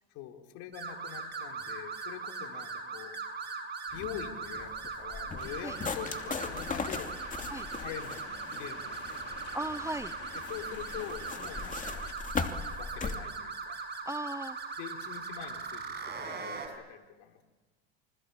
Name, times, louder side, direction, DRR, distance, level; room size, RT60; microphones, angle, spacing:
voice 1, 0.1-3.2 3.9-7.1 7.8-9.3 10.5-12.0 12.8-13.9 14.8-17.4, left 10 dB, 65° left, 3 dB, 4.3 m, -44 dB
sound 1, 0.7-16.7, right 4 dB, 30° right, 6.5 m, -40 dB
sound 2, 3.9-13.2, left 4 dB, 25° left, 2.8 m, -39 dB
sound 3, 5.4-12.1, left 9 dB, 45° left, 2.9 m, -49 dB
voice 2, 9.5-10.1 14.1-14.6, right 1 dB, 10° right, 14 dB, 0.8 m, -36 dB
28.5 x 26.0 x 7.2 m, 1.3 s
hypercardioid pair, 90°, 32 cm